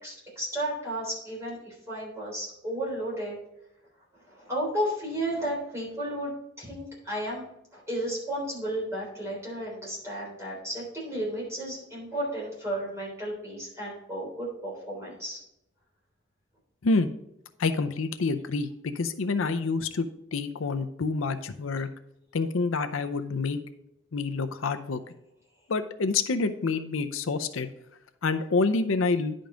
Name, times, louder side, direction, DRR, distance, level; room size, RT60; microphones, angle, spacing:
voice 1, 0.0-3.4 4.3-6.3 6.6-7.4 7.7-15.4, right 1 dB, 15° right, -5 dB, 3.5 m, -33 dB
voice 2, 17.6-20.1 20.3-21.9 22.3-23.6 24.1-25.0 25.7-27.7 28.2-29.3, left 3 dB, 80° left, 8 dB, 0.6 m, -27 dB
10.5 x 5.2 x 3.8 m, 0.83 s
head